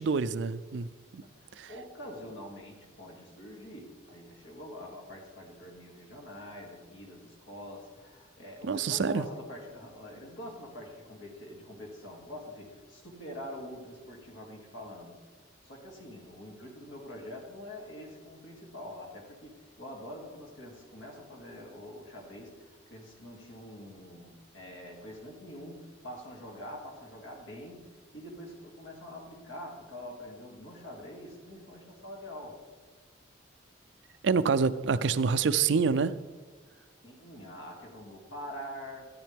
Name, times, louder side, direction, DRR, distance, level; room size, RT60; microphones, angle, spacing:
voice 1, 0.0-1.2 1.6-1.7 8.6-9.2 34.2-36.1, right 5 dB, 65° right, 14 dB, 0.4 m, -27 dB
voice 2, 1.2-15.2 15.6-32.6 37.0-39.1, left 1 dB, 70° left, 0 dB, 2.6 m, -45 dB
13.5 x 10.5 x 3.5 m, 1.3 s
head